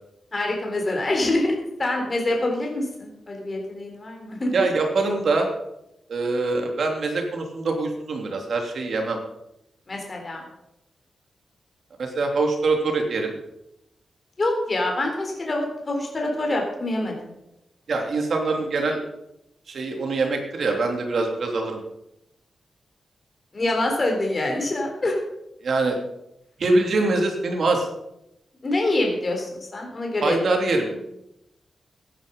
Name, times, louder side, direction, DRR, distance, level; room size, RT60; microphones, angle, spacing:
voice 1, 0.3-4.5 9.9-10.4 14.4-17.3 23.5-25.2 28.6-30.4, left 2 dB, 30° left, 1 dB, 3.8 m, -25 dB
voice 2, 4.5-5.5 6.1-9.2 12.0-13.3 17.9-19.0 19.7-21.8 25.6-26.0 26.6-27.9 30.2-30.9, right 3 dB, 60° right, 3 dB, 3.0 m, -23 dB
15.5 x 10.0 x 5.4 m, 0.86 s
wide cardioid pair, 125°, 0 cm